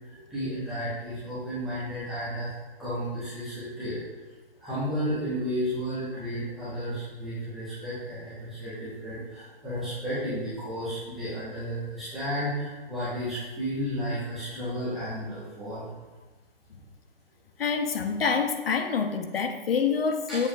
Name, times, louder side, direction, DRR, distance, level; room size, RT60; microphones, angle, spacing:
voice 1, 0.0-4.0 4.6-15.9 20.3-20.5, equal, ahead, -16 dB, 0.3 m, -33 dB
voice 2, 17.6-20.5, left 5 dB, 70° left, 8 dB, 0.8 m, -26 dB
7.1 x 6.7 x 2.6 m, 1.3 s
hypercardioid pair, 150°, 30 cm